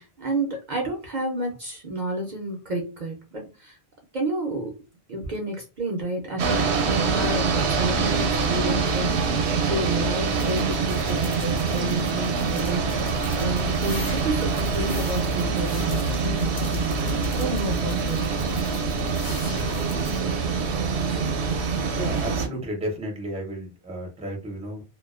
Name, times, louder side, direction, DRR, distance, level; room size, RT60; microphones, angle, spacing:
voice 1, 0.0-3.8 4.1-4.8 5.1-18.2, right 2 dB, 55° right, 1 dB, 0.6 m, -30 dB
sound 1, 6.4-22.5, right 4 dB, 85° right, 0.8 m, -25 dB
sound 2, 10.3-20.2, left 2 dB, 30° left, 0.7 m, -43 dB
voice 2, 22.0-24.8, right 1 dB, 10° right, 1 dB, 0.5 m, -32 dB
2.4 x 2.2 x 2.3 m, 0.29 s
omnidirectional pair, 1.1 m